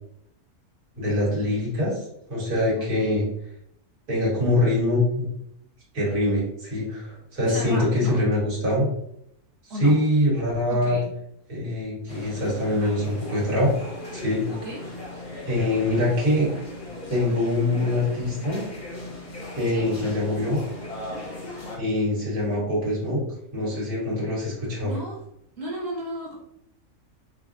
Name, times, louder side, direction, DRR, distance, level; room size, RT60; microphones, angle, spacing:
voice 1, 1.0-2.0 2.3-3.3 4.1-5.3 5.9-8.9 9.6-11.0 11.5-13.7 14.1-14.4 15.4-16.5 17.1-18.7 19.6-20.6 21.8-23.2 23.5-24.9, left 1 dB, 80° right, -5 dB, 2.1 m, -24 dB
voice 2, 2.8-3.1 7.4-8.2 9.7-10.0 10.7-11.1 14.5-14.8 19.7-19.9 24.8-25.2 25.6-26.4, equal, 55° right, -3 dB, 1.5 m, -35 dB
sound 1, 12.1-21.8, left 2 dB, 35° left, 0.6 m, -38 dB
5.5 x 2.0 x 2.6 m, 0.74 s
omnidirectional pair, 1.6 m